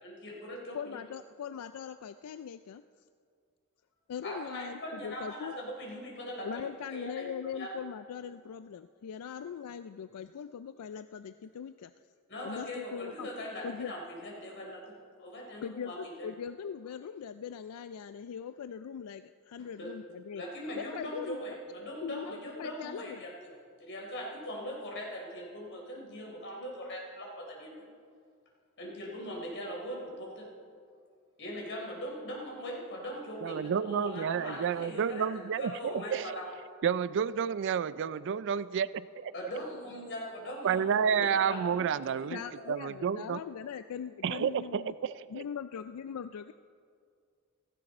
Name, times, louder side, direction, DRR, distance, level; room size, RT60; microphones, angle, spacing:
voice 1, 0.0-1.0 4.2-6.6 6.9-7.3 7.5-7.7 12.3-16.3 19.6-19.9 20.4-23.5 23.8-27.9 28.8-30.5 31.4-36.5 39.3-42.4, equal, 55° left, -2 dB, 4.0 m, -41 dB
voice 2, 0.7-2.8 4.1-5.6 6.4-11.9 12.4-13.3 13.6-13.9 15.6-20.4 20.7-21.4 22.0-23.2 41.3-41.4 42.3-44.9 45.3-46.5, left 7 dB, 85° left, 12 dB, 0.4 m, -41 dB
voice 3, 33.4-36.4 36.8-39.3 40.6-42.4 42.7-43.4 44.2-45.4, right 7 dB, 55° right, 17 dB, 0.4 m, -30 dB
16.5 x 15.0 x 4.3 m, 2.2 s
head